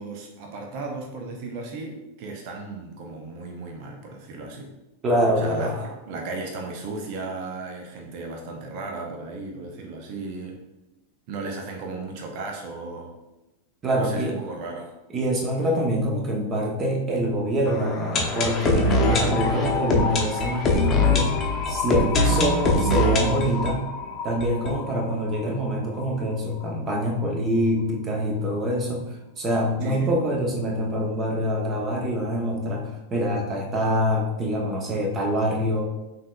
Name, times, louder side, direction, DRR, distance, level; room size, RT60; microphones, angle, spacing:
voice 1, 0.0-4.7 5.4-10.6 11.3-13.1 13.9-14.9 19.1-19.4 29.8-30.1, right 3 dB, 45° right, 1 dB, 0.7 m, -35 dB
voice 2, 5.0-5.7 13.8-14.4 15.1-21.3 21.7-23.8 24.2-29.1 29.4-35.8, equal, 25° right, 0 dB, 1.0 m, -25 dB
sound 1, 17.7-25.4 25.7-25.8 26.0-26.1 26.6-26.7, left 2 dB, 25° left, 0.8 m, -23 dB
5.5 x 3.2 x 2.4 m, 0.98 s
figure-of-eight pair, 90°, 0 cm